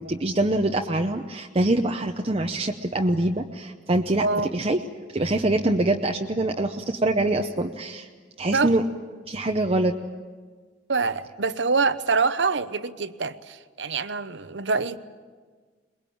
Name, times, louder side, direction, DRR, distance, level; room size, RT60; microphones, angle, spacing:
voice 1, 0.0-4.3 4.5-4.8 5.1-8.1 8.4-8.8 9.3-9.9, right 2 dB, 30° right, 3 dB, 0.8 m, -24 dB
voice 2, 4.2-4.7 8.5-8.7 10.9-15.0, right 4 dB, 70° right, 13 dB, 0.9 m, -25 dB
23.0 x 21.5 x 8.6 m, 1.5 s
head